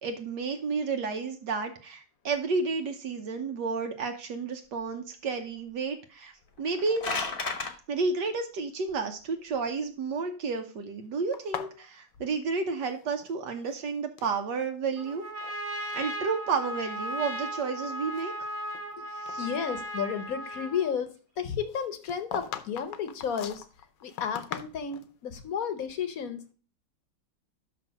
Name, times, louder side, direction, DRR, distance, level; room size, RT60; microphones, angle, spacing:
voice 1, 0.0-6.3 6.6-7.0 7.9-15.2 15.9-18.3 19.3-19.4, right 4 dB, 70° right, 6 dB, 1.4 m, -31 dB
sound 1, 6.6-7.7, left 4 dB, 35° left, 1.0 m, -32 dB
sound 2, 11.3-13.3 13.6-14.4 15.0-15.6 15.9-16.1 16.8-16.9 17.4-18.9 19.3-19.4 21.7-25.1, left 9 dB, 75° left, 1.4 m, -41 dB
Trumpet, 15.0-20.9, right 1 dB, 20° right, 1.4 m, -36 dB
voice 2, 19.4-23.6 24.0-26.5, left 7 dB, 55° left, 10 dB, 1.2 m, -32 dB
6.0 x 5.7 x 6.2 m, 0.36 s
omnidirectional pair, 2.0 m